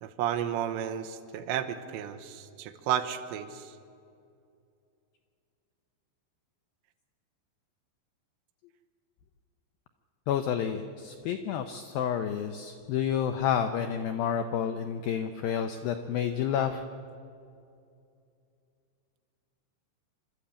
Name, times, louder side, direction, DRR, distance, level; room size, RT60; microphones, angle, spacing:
voice 1, 0.0-3.7, right 10 dB, 80° right, 8 dB, 3.2 m, -32 dB
voice 2, 10.3-16.8, left 8 dB, 85° left, 7 dB, 2.1 m, -30 dB
25.5 x 13.0 x 8.6 m, 2.5 s
omnidirectional pair, 5.1 m